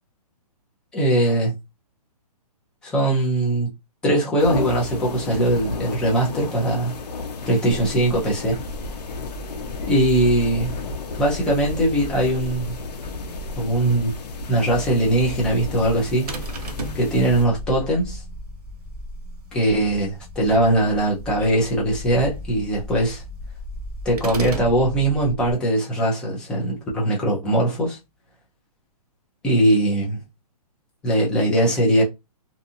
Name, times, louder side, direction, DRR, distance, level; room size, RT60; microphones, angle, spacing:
voice 1, 0.9-1.5 2.8-3.7 4.0-7.0 7.5-8.6 9.9-10.8 11.2-12.8 13.6-14.1 14.5-16.3 16.9-18.2 19.5-23.2 24.0-28.0 29.4-30.2 31.0-32.0, right 1 dB, 5° left, 0.4 m, -21 dB
sound 1, 4.4-17.5, left 3 dB, 80° left, 0.7 m, -33 dB
sound 2, 7.9-25.5, left 2 dB, 35° left, 0.9 m, -37 dB
sound 3, 16.3-17.1 24.2-24.8, right 4 dB, 70° right, 0.8 m, -32 dB
2.6 x 2.4 x 2.6 m
hypercardioid pair, 160°, 21 cm